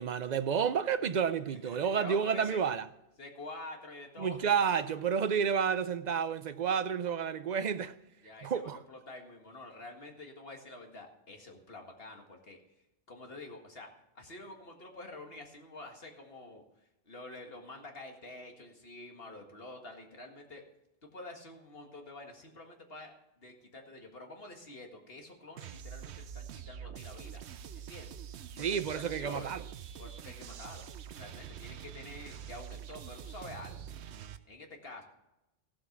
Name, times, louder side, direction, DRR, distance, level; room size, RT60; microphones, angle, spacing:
voice 1, 0.0-2.8 4.2-7.9 8.4-8.8 28.6-29.6, right 7 dB, 50° right, 0.6 m, -30 dB
voice 2, 1.5-2.6 3.2-4.5 8.2-12.6 13.1-16.6 17.1-20.6 21.0-27.4 27.8-28.1 28.6-29.5 30.0-30.9 31.1-33.8 34.5-35.0, left 2 dB, 60° left, 2.0 m, -48 dB
sound 1, 25.6-34.4, right 8 dB, 80° right, 0.9 m, -45 dB
15.0 x 7.6 x 5.9 m
omnidirectional pair, 1.1 m